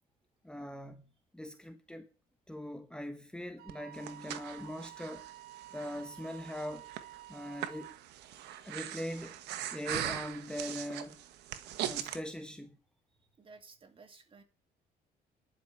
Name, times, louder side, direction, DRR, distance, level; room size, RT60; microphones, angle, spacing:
voice 1, 0.4-2.1 2.5-5.3 5.7-6.9 7.3-7.9 8.6-9.4 9.7-11.2 11.8-12.8, left 1 dB, 5° left, 1.2 m, -41 dB
Wind instrument woodwind instrument, 3.6-8.0, right 14 dB, 60° right, 0.7 m, -51 dB
Breathing, 3.7-12.2, right 12 dB, 85° right, 1.3 m, -41 dB
voice 2, 8.3-8.8 13.4-14.4, right 4 dB, 30° right, 2.5 m, -57 dB
11.0 x 5.9 x 9.1 m
cardioid pair, 110°, 17 cm